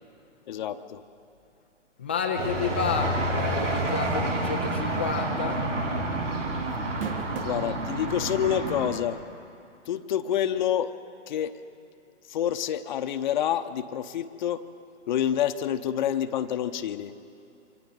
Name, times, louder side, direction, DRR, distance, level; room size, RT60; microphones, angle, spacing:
voice 1, 0.5-1.0 7.4-9.2 9.9-10.9 11.3-11.5 12.3-14.6 15.1-17.1, left 10 dB, 40° left, 8 dB, 0.8 m, -28 dB
voice 2, 2.0-5.6, left 5 dB, 10° left, 3 dB, 0.4 m, -30 dB
sound 1, 2.4-8.9, right 1 dB, 75° right, 3.7 m, -29 dB
sound 2, 5.0-5.3 5.6-5.7 6.7-7.7 8.4-8.5 10.1-10.2, right 7 dB, 45° right, 1.7 m, -35 dB
28.0 x 25.5 x 4.0 m, 2.5 s
figure-of-eight pair, 135°, 37 cm